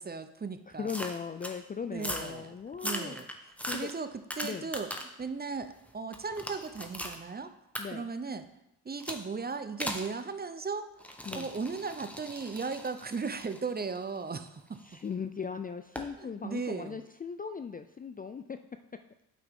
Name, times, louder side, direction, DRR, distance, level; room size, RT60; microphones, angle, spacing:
voice 1, 0.0-1.0 1.9-2.5 2.8-3.3 3.7-4.1 4.4-4.9 5.2-7.5 7.9-8.5 8.8-14.8 16.2-17.0, right 4 dB, 25° right, 11 dB, 0.7 m, -37 dB
voice 2, 0.7-3.2 3.6-3.9 4.4-4.7 7.8-8.1 11.3-11.5 14.8-18.6, left 6 dB, 25° left, 9 dB, 0.4 m, -38 dB
sound 1, 0.9-1.6 2.0-2.3 2.7-5.2 5.6-7.2 7.7-7.8 9.0-9.2 9.8-10.1 11.0-14.9 15.9-16.1, equal, 5° left, 1.2 m, -39 dB
8.5 x 5.8 x 3.6 m, 0.84 s
supercardioid pair, 55°, 40 cm